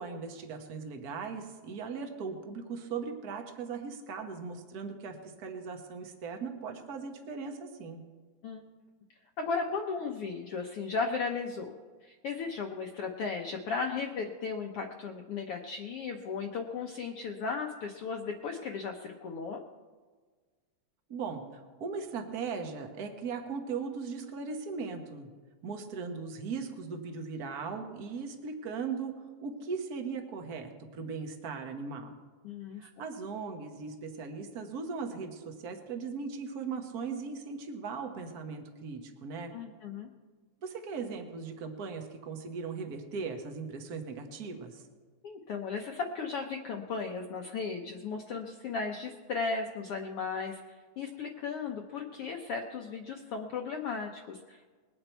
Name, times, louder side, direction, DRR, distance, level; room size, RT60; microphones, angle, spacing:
voice 1, 0.0-8.0 21.1-25.3 25.6-29.1 29.4-32.2 32.8-39.5 40.6-44.8, right 5 dB, 85° right, 4 dB, 0.8 m, -38 dB
voice 2, 9.4-11.7 12.0-19.6 32.4-32.9 39.5-40.1 45.2-54.6, left 5 dB, 70° left, 3 dB, 1.4 m, -36 dB
21.5 x 8.5 x 4.5 m, 1.5 s
omnidirectional pair, 3.5 m